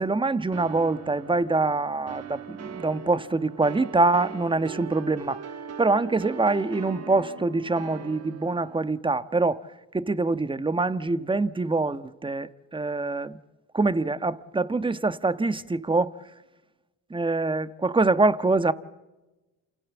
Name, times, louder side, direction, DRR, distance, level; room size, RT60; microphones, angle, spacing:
voice 1, 0.0-5.5 5.8-9.7 9.9-13.4 13.7-16.2 17.1-18.7, right 3 dB, 15° right, 1.4 m, -25 dB
sound 1, 0.5-8.8, right 6 dB, 55° right, 2.3 m, -40 dB
29.0 x 28.5 x 7.3 m
supercardioid pair, 80°, 29 cm